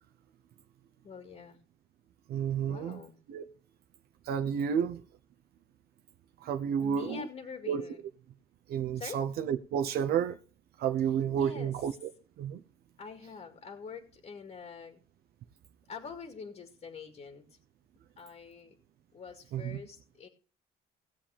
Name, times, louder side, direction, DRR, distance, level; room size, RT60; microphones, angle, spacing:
voice 1, 1.0-1.6 2.7-3.2 6.8-8.0 8.9-9.2 11.3-11.7 13.0-15.0 15.9-17.6 18.2-18.8 19.1-20.3, left 5 dB, 45° left, 2.1 m, -45 dB
voice 2, 2.3-3.0 3.3-3.4 4.3-5.0 6.4-7.3 7.7-7.8 8.7-10.4 10.8-12.1 12.4-12.6 19.5-19.8, right 8 dB, 70° right, 0.8 m, -31 dB
18.0 x 7.7 x 3.5 m
cardioid pair, 110°, 17 cm